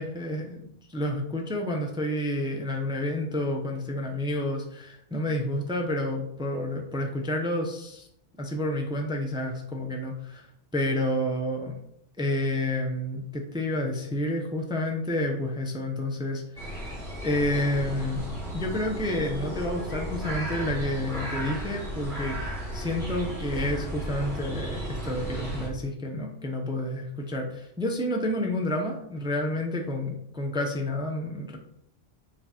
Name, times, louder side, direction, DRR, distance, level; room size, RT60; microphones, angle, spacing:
voice 1, 0.0-8.1 8.4-10.5 10.7-11.7 12.2-18.2 18.5-22.4 22.7-31.6, left 1 dB, 5° right, 1 dB, 0.7 m, -30 dB
sound 1, 16.6-25.7, right 1 dB, 25° right, 2.8 m, -34 dB
7.3 x 4.6 x 4.4 m, 0.74 s
omnidirectional pair, 1.2 m